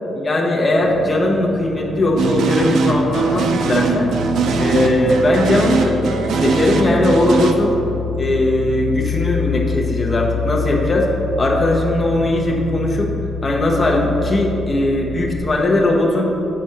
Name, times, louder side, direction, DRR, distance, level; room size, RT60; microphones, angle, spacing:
voice 1, 0.2-4.1 4.6-7.8 8.1-11.1 11.4-13.1 13.4-16.4, left 1 dB, 20° left, -1 dB, 0.9 m, -18 dB
sound 1, 0.6-15.4, left 5 dB, 40° right, 1.2 m, -27 dB
sound 2, 2.2-7.5, right 4 dB, 70° right, 0.5 m, -20 dB
7.8 x 4.2 x 6.6 m, 3.0 s
wide cardioid pair, 170°, 0 cm